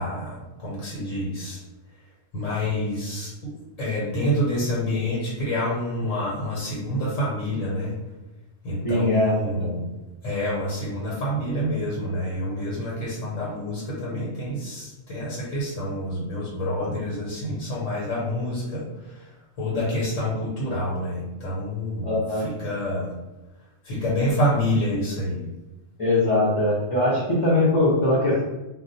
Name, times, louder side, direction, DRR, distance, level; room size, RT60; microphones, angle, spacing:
voice 1, 0.0-1.6 2.3-7.9 8.6-9.9 10.2-19.3 19.6-23.1 23.8-25.4, left 1 dB, 85° left, -6 dB, 1.3 m, -27 dB
voice 2, 8.8-9.3 9.6-9.7 22.0-22.5 26.0-28.4, left 1 dB, 30° left, -9 dB, 0.6 m, -21 dB
2.4 x 2.2 x 4.0 m, 1.0 s
omnidirectional pair, 1.3 m